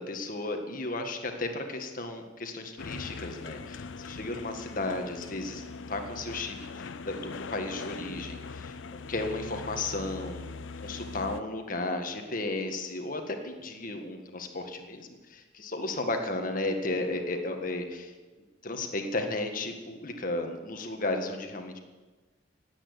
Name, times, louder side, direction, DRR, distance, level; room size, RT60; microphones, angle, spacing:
voice 1, 0.0-18.1 18.6-21.8, left 2 dB, 45° left, 5 dB, 1.8 m, -34 dB
sound 1, 2.8-11.4, left 4 dB, 75° left, 0.6 m, -41 dB
17.5 x 8.8 x 8.2 m, 1.2 s
head